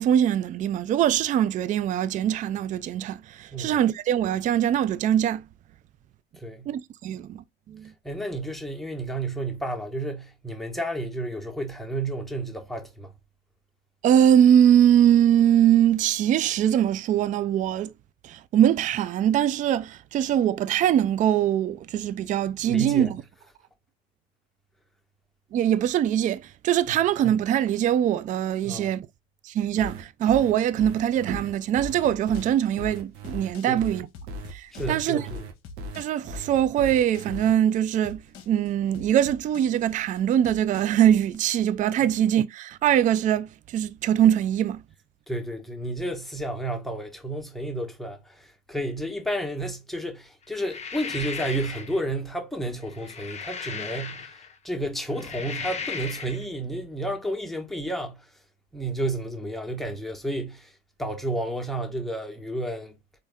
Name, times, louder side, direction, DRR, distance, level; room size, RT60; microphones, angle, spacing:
voice 1, 0.0-5.4 6.7-7.9 14.0-17.9 18.2-23.1 25.5-29.1 29.4-34.1 34.5-35.3 36.0-44.8, right 10 dB, 25° right, 0.3 m, -22 dB
voice 2, 6.4-6.7 8.0-13.1 22.7-23.1 28.6-28.9 33.6-33.8 34.7-35.4 42.0-42.1 45.3-54.3 54.6-58.3 58.7-60.7 61.0-62.9, right 1 dB, ahead, 1.1 m, -31 dB
sound 1, 29.8-37.5, equal, 60° right, 0.9 m, -37 dB
sound 2, 31.8-41.4, left 3 dB, 45° left, 0.9 m, -45 dB
sound 3, 50.5-52.0 52.8-54.5 55.0-56.4, left 5 dB, 20° left, 0.7 m, -36 dB
4.0 x 2.7 x 3.4 m
figure-of-eight pair, 60°, 31 cm